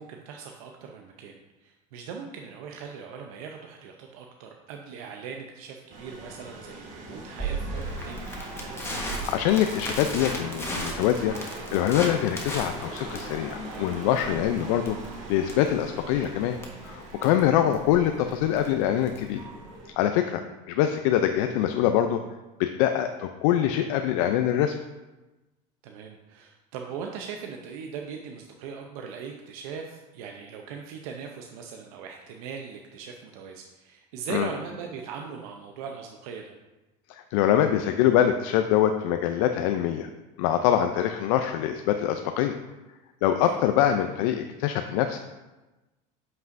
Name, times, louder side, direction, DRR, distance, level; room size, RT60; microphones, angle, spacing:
voice 1, 0.0-8.2 16.1-16.3 25.8-36.5 43.4-43.6, right 6 dB, 85° right, 2 dB, 0.6 m, -40 dB
sound 1, 5.9-19.9, right 2 dB, 45° right, 1.8 m, -40 dB
Crackle, 7.4-19.4, right 1 dB, 15° left, 1.3 m, -36 dB
voice 2, 8.8-11.4 11.7-15.0 15.3-16.6 16.8-19.4 20.0-22.2 22.6-24.7 34.3-34.5 37.1-40.1 40.4-42.5 43.2-45.2, left 10 dB, 75° left, 7 dB, 0.4 m, -24 dB
7.9 x 5.4 x 2.6 m, 1.1 s
supercardioid pair, 115°, 18 cm